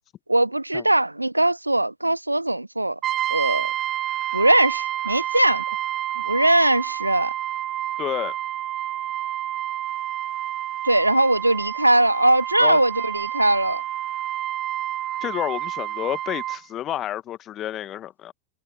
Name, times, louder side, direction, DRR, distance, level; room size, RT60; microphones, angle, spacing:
voice 1, 0.3-3.0 3.3-3.7 4.3-5.8 6.2-7.3 10.8-13.8, right 1 dB, 85° right, 0.6 m, -20 dB
Brass instrument, 3.0-16.6, right 13 dB, 30° right, 1.8 m, -29 dB
voice 2, 8.0-8.3 12.6-12.8 15.2-18.3, left 12 dB, 30° left, 1.5 m, -29 dB
figure-of-eight pair, 90°, 0 cm